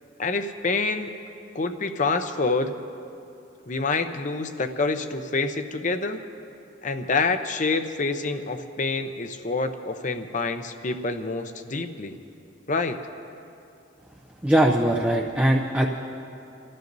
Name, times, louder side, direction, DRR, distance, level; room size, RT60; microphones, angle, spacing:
voice 1, 0.2-1.1 1.5-2.7 3.7-6.2 6.8-12.1 12.7-13.0, left 3 dB, 40° left, 8 dB, 0.7 m, -27 dB
voice 2, 14.4-15.9, right 1 dB, 5° right, -2 dB, 0.5 m, -20 dB
27.0 x 14.0 x 2.7 m, 2.7 s
head